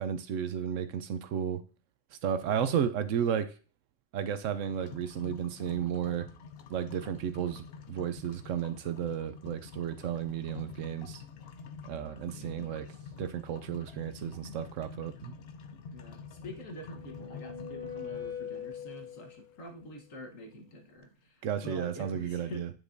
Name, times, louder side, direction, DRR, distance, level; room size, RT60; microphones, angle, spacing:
voice 1, 0.0-1.6 2.2-3.5 4.1-6.3 6.7-11.2 11.8-12.9 13.2-15.4 21.4-22.7, right 9 dB, 80° right, 11 dB, 1.0 m, -33 dB
sound 1, 4.7-20.6, left 5 dB, 60° left, 0.8 m, -48 dB
voice 2, 12.3-12.8 15.9-22.6, left 1 dB, 85° left, 3 dB, 1.7 m, -46 dB
sound 2, 16.5-19.5, left 7 dB, 30° right, 0.6 m, -42 dB
9.0 x 4.9 x 2.6 m, 0.37 s
omnidirectional pair, 1.3 m